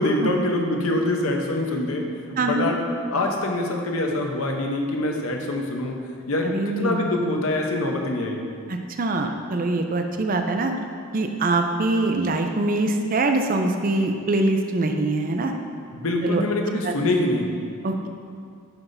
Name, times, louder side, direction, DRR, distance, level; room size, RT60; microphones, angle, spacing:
voice 1, 0.0-2.8 3.1-6.0 6.3-8.4 15.9-17.6, left 1 dB, 70° left, 2 dB, 0.9 m, -24 dB
voice 2, 2.4-2.7 6.5-7.0 8.7-10.7 11.1-15.5 16.2-16.4 16.8-16.9 17.8-18.1, right 2 dB, 40° right, 5 dB, 0.5 m, -23 dB
10.5 x 5.8 x 2.7 m, 2.2 s
head